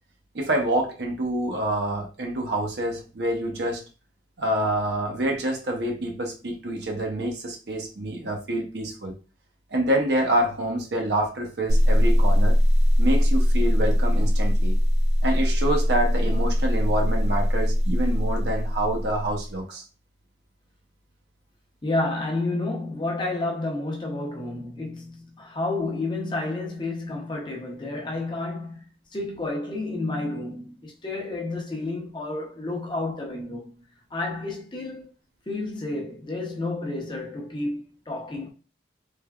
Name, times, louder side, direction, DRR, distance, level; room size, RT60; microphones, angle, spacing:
voice 1, 0.3-3.8 4.4-9.1 9.7-12.6 13.0-14.8 15.2-19.8, right 1 dB, 70° right, 0.7 m, -27 dB
sound 1, 11.7-19.5, equal, 40° right, 0.3 m, -21 dB
voice 2, 21.8-33.8 34.1-35.1 35.5-38.5, left 2 dB, 25° left, 0.6 m, -30 dB
3.2 x 2.1 x 2.3 m
head